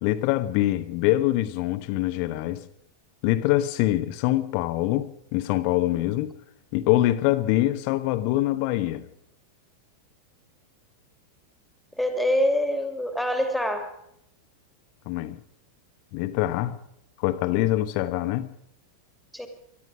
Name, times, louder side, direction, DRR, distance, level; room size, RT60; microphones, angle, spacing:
voice 1, 0.0-2.6 3.2-6.3 6.7-9.1 15.1-15.4 16.1-16.8 17.2-18.5, left 15 dB, 45° left, 1.2 m, -24 dB
voice 2, 12.0-13.9 19.3-19.5, left 1 dB, ahead, 2.7 m, -25 dB
22.0 x 12.5 x 5.0 m
figure-of-eight pair, 90°, 0 cm